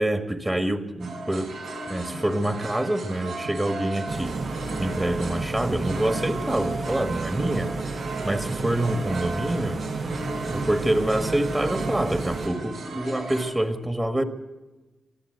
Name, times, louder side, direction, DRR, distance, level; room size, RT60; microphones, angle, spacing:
voice 1, 0.0-1.6 1.9-4.4 4.8-7.8 8.2-9.8 10.5-14.2, right 1 dB, 15° right, 8 dB, 1.7 m, -26 dB
sound 1, 1.0-13.4, right 2 dB, 85° right, 5.5 m, -36 dB
sound 2, 4.1-12.5, right 3 dB, 50° right, 1.4 m, -31 dB
24.0 x 14.0 x 8.1 m, 1.1 s
cardioid pair, 90°, 0 cm